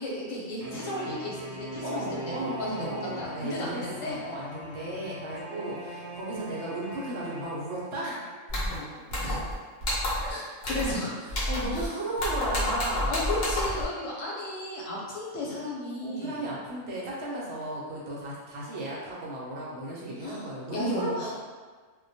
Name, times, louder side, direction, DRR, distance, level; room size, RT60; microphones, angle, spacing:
voice 1, 0.0-4.2 8.6-9.5 10.3-11.2 11.7-11.9 13.1-16.4 20.2-20.5 20.7-21.3, left 1 dB, 85° left, -5 dB, 1.0 m, -34 dB
sound 1, 0.6-8.3, right 1 dB, 85° right, 1.0 m, -41 dB
voice 2, 1.8-8.2 8.5-8.6 10.2-10.3 11.2-13.2 16.0-21.3, right 1 dB, 65° right, -5 dB, 0.8 m, -35 dB
sound 2, 8.5-8.8 9.1-9.5 9.8-10.3 10.6-11.0 11.3-11.9 12.2-13.8, left 1 dB, 60° left, 0.9 m, -29 dB
2.2 x 2.1 x 2.6 m, 1.5 s
omnidirectional pair, 1.3 m